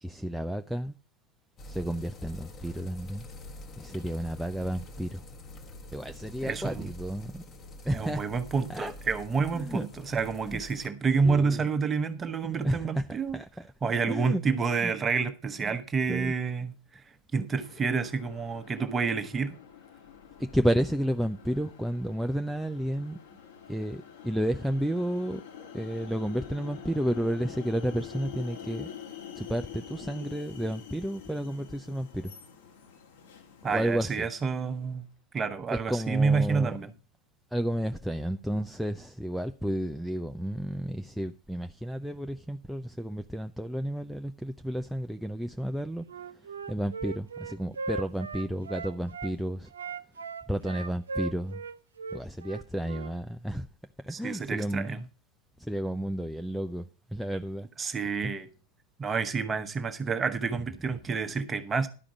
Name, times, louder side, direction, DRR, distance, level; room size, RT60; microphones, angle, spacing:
voice 1, 0.0-1.0 1.7-3.3 3.8-5.2 5.9-7.4 7.8-8.3 8.7-8.9 9.5-9.9 10.5-10.6 11.2-11.6 12.6-13.7 14.1-14.4 14.8-14.9 16.1-16.3 17.4-17.5 20.4-23.2 23.7-28.9 29.4-32.3 33.6-34.3 35.7-36.8 37.5-46.1 46.7-49.7 50.5-51.6 52.1-53.7 54.0-55.1 55.6-57.7 58.2-58.3, equal, ahead, 0.5 m, -32 dB
sound 1, 1.6-10.9, left 1 dB, 25° left, 1.3 m, -46 dB
voice 2, 6.4-6.9 7.9-13.4 13.8-17.0 17.3-19.6 33.6-35.1 35.3-36.9 54.1-55.0 57.8-58.5 59.0-61.9, right 5 dB, 20° right, 1.1 m, -29 dB
sound 2, 17.5-35.0, left 9 dB, 60° left, 1.9 m, -47 dB
Wind instrument woodwind instrument, 46.1-49.3 49.7-53.1, right 4 dB, 70° right, 0.6 m, -38 dB
12.0 x 5.0 x 7.1 m
figure-of-eight pair, 90°, 0 cm